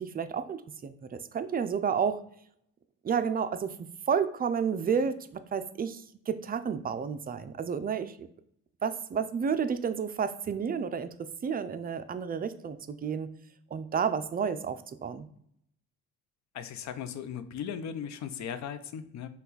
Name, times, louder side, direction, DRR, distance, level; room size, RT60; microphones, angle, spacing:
voice 1, 0.0-2.2 3.0-8.3 8.8-13.3 13.7-15.3, right 6 dB, 30° right, 11 dB, 0.4 m, -31 dB
voice 2, 16.5-19.3, left 8 dB, 65° left, 12 dB, 0.5 m, -37 dB
5.5 x 2.3 x 3.9 m, 0.69 s
cardioid pair, 90°, 30 cm